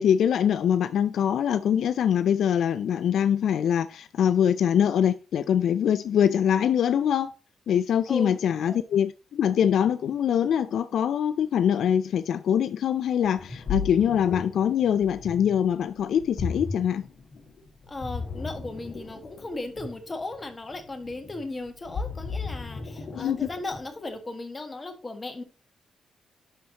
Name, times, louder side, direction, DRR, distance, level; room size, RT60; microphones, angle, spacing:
voice 1, 0.0-7.3 7.7-17.1 23.1-23.5, left 9 dB, 75° left, 0.3 m, -23 dB
voice 2, 8.1-8.4 8.7-8.8 17.9-25.4, left 2 dB, 25° left, 1.5 m, -36 dB
Ocean, 13.2-24.0, left 4 dB, 60° left, 1.8 m, -36 dB
11.0 x 4.3 x 2.9 m
cardioid pair, 90°, 0 cm